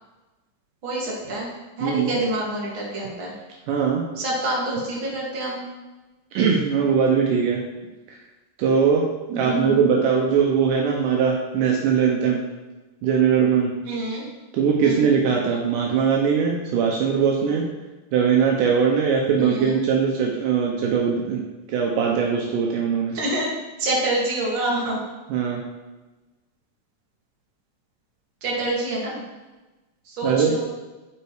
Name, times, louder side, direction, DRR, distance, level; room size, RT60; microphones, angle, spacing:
voice 1, 0.8-1.5 1.8-3.4 4.2-5.6 9.3-9.8 13.8-14.2 14.8-15.1 19.3-19.8 23.1-23.5 23.8-25.0 28.4-29.2 30.0-30.6, right 1 dB, 40° right, -5 dB, 2.8 m, -27 dB
voice 2, 1.8-2.1 3.7-4.0 6.3-7.6 8.6-9.0 9.3-12.4 13.0-13.7 14.5-17.7 18.1-21.4 21.7-23.1 25.3-25.6 30.2-30.5, right 6 dB, 75° right, -1 dB, 2.4 m, -20 dB
11.5 x 4.6 x 4.7 m, 1.1 s
omnidirectional pair, 3.8 m